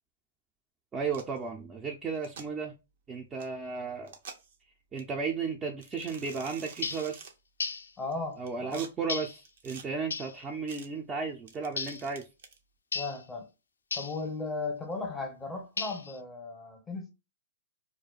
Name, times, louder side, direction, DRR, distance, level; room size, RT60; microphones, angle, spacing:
voice 1, 0.9-2.7 3.1-4.1 4.9-7.3 8.4-12.2, right 5 dB, 20° right, 0.5 m, -34 dB
sound 1, 1.1-1.4 2.1-2.5 3.4-3.5 4.0-4.6 5.0-5.1 5.8-7.3 8.1-8.9 9.4-9.8 10.7-10.9 11.5-12.6, right 6 dB, 65° right, 0.6 m, -48 dB
sound 2, 6.8-7.1 7.6-7.9 9.1-9.4 10.1-10.4 11.8-12.1 12.9-13.2 13.9-14.2 15.8-16.2, left 4 dB, 85° left, 0.3 m, -35 dB
voice 2, 8.0-8.9 12.9-13.5 13.9-17.1, left 3 dB, 10° left, 0.8 m, -36 dB
2.4 x 2.1 x 3.9 m
hypercardioid pair, 120°, 0 cm